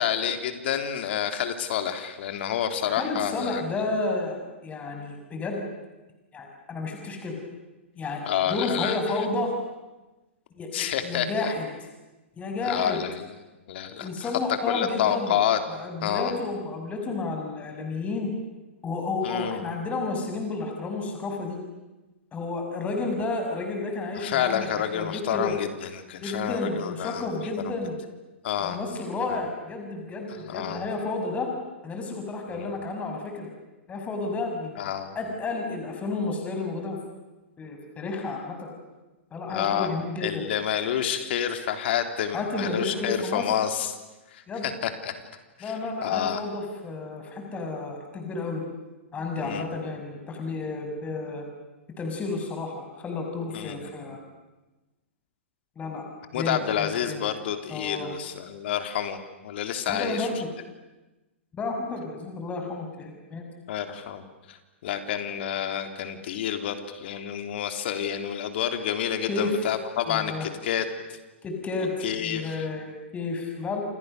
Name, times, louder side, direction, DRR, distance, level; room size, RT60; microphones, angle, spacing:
voice 1, 0.0-3.6 8.3-9.0 10.7-11.5 12.6-13.3 13.7-14.3 14.7-15.6 16.0-16.3 19.2-19.6 24.2-27.2 27.6-27.8 28.4-28.8 29.3-29.4 30.5-30.9 32.5-32.7 34.8-35.2 39.5-44.0 44.3-45.1 45.6-45.7 46.0-46.4 49.4-49.7 53.5-53.9 56.3-59.2 59.4-60.3 63.7-64.6 64.8-70.9 72.0-72.7, left 9 dB, 60° left, 7 dB, 3.5 m, -29 dB
voice 2, 3.0-5.6 6.3-7.3 8.0-8.2 8.5-9.5 10.5-11.7 12.4-13.0 14.0-15.4 15.7-18.3 18.8-21.6 22.3-25.5 26.2-27.9 28.6-31.5 31.8-33.5 33.9-37.0 37.6-38.7 39.3-40.5 42.3-43.5 44.5-44.7 45.6-48.6 49.1-51.4 52.0-54.2 55.8-56.0 56.3-57.2 57.7-58.1 59.9-60.5 61.5-63.4 69.3-69.6 70.1-70.5 71.4-73.8, left 3 dB, 20° left, 3 dB, 6.2 m, -31 dB
28.5 x 28.0 x 6.8 m, 1.1 s
hypercardioid pair, 115°, 7 cm